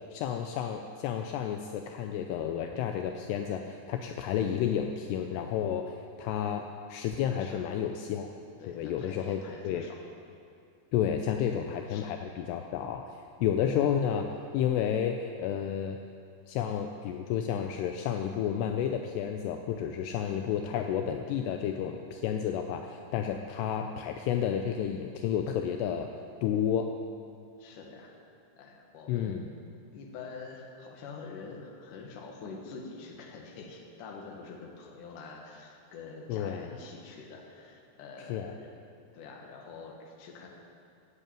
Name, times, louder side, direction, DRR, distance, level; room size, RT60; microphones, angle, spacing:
voice 1, 0.1-5.9 6.2-6.6 6.9-8.3 8.6-9.9 10.9-13.1 13.4-14.3 14.5-16.0 16.5-26.1 26.4-26.9 29.1-29.4 36.3-36.7 38.3-38.5, left 9 dB, 80° left, 5 dB, 2.7 m, -31 dB
voice 2, 8.6-10.0 11.5-11.6 11.9-12.0 27.6-28.1 28.6-29.5 29.9-38.7 39.1-40.5, left 4 dB, 60° left, 1 dB, 2.7 m, -46 dB
14.5 x 8.2 x 9.0 m, 2.4 s
omnidirectional pair, 4.9 m